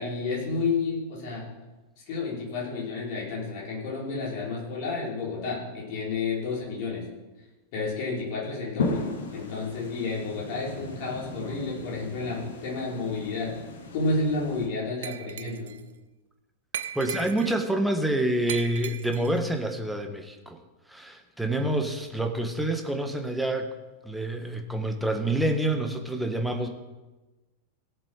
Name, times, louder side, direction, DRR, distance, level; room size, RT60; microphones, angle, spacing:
voice 1, 0.0-1.4 2.1-7.0 7.7-13.5 13.9-15.7, left 3 dB, 45° left, -5 dB, 5.0 m, -31 dB
sound 1, 8.8-14.7, left 3 dB, 65° left, 1.7 m, -36 dB
Glass, 15.0-15.8 16.7-17.7 18.5-19.4, right 9 dB, 60° right, 0.5 m, -37 dB
voice 2, 16.9-20.6 20.9-23.7 24.0-26.7, right 1 dB, 5° right, 4 dB, 1.4 m, -27 dB
17.0 x 7.6 x 4.9 m, 1.1 s
figure-of-eight pair, 90°, 0 cm